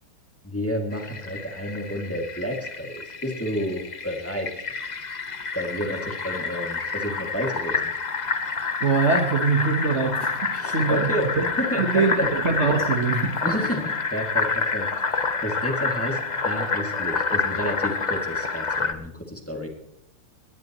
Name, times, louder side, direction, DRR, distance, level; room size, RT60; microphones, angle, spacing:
voice 1, 0.4-4.5 5.5-7.9 10.5-11.3 11.6-12.3 13.4-19.7, equal, 5° left, 1 dB, 2.2 m, -30 dB
Fill (with liquid), 0.9-18.9, left 4 dB, 55° left, 0.4 m, -28 dB
voice 2, 8.8-11.4 11.7-13.4, right 4 dB, 40° right, 3 dB, 1.4 m, -23 dB
21.5 x 18.0 x 3.1 m, 0.75 s
omnidirectional pair, 2.3 m